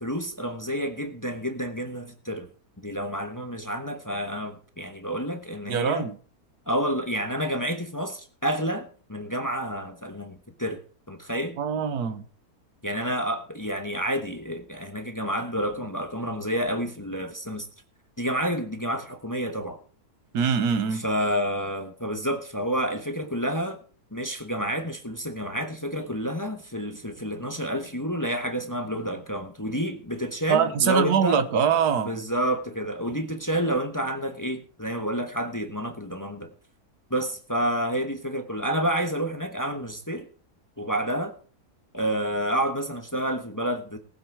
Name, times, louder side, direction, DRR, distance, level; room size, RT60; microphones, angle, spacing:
voice 1, 0.0-2.5 2.8-6.1 6.7-10.8 11.1-11.6 12.8-17.7 18.2-19.8 20.9-23.8 24.1-31.4 32.1-36.5 37.1-40.3 40.8-41.3 41.9-44.0, equal, 15° left, 1.0 m, -29 dB
voice 2, 5.7-6.2 11.6-12.2 20.3-21.0 30.5-32.2, right 7 dB, 85° right, 1.6 m, -23 dB
19.0 x 7.9 x 4.7 m
omnidirectional pair, 1.6 m